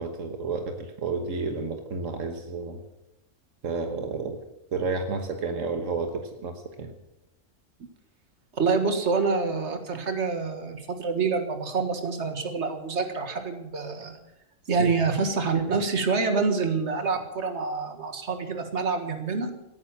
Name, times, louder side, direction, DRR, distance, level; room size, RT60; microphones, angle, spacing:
voice 1, 0.0-2.8 3.6-4.4 4.7-6.9 14.8-14.9, right 4 dB, 85° right, 6 dB, 1.6 m, -31 dB
voice 2, 8.5-14.1 14.7-19.5, right 4 dB, 60° right, 7 dB, 2.0 m, -27 dB
17.5 x 9.6 x 7.2 m, 0.92 s
omnidirectional pair, 1.3 m